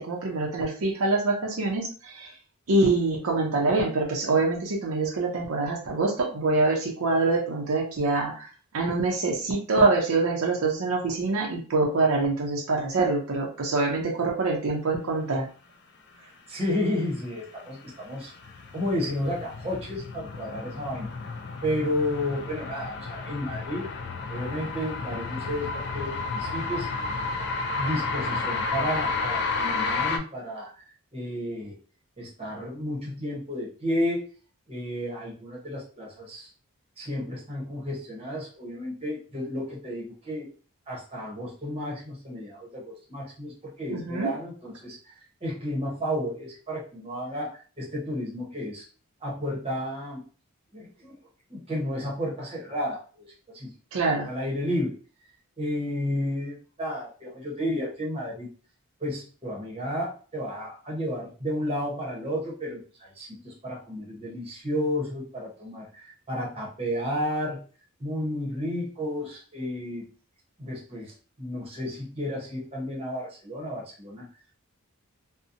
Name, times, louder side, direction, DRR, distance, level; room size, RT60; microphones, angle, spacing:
voice 1, 0.0-2.3 2.7-8.5 8.7-15.4 43.9-44.3 53.9-54.3, right 3 dB, 70° right, 1 dB, 0.5 m, -25 dB
voice 2, 16.5-18.3 18.7-21.1 21.6-23.9 24.3-26.9 27.8-30.7 31.1-31.8 32.2-34.2 34.7-36.5 37.0-40.5 40.9-45.1 45.4-48.8 49.2-50.2 50.7-51.2 51.5-53.3 53.5-53.7 54.2-54.9 55.6-58.5 59.0-67.6 68.0-70.1 70.6-74.3, equal, 25° right, -3 dB, 0.8 m, -32 dB
sound 1, 17.4-30.2, left 4 dB, 50° left, 0.3 m, -32 dB
2.7 x 2.1 x 2.5 m, 0.39 s
head